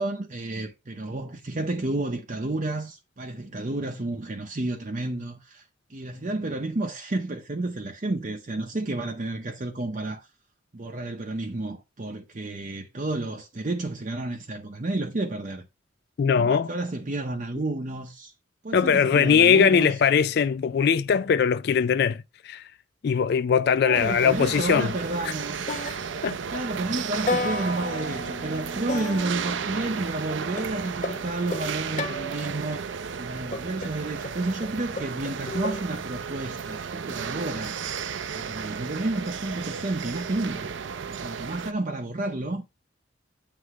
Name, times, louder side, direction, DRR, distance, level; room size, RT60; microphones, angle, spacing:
voice 1, 0.0-10.3 10.7-15.7 16.4-18.3 18.6-19.9 23.8-25.8 26.5-32.8 33.2-37.8 38.3-40.7 41.1-42.6, right 2 dB, 40° right, 0.7 m, -31 dB
voice 2, 16.2-16.7 18.7-22.6 23.0-24.9 25.3-25.4 26.2-26.4, left 7 dB, 55° left, 0.3 m, -21 dB
sound 1, 23.9-41.7, right 6 dB, 75° right, 0.5 m, -34 dB
sound 2, 25.1-25.4 25.7-26.7 27.3-30.1 30.6-32.7 33.5-35.8, left 2 dB, 40° left, 0.8 m, -34 dB
8.0 x 3.4 x 4.8 m
head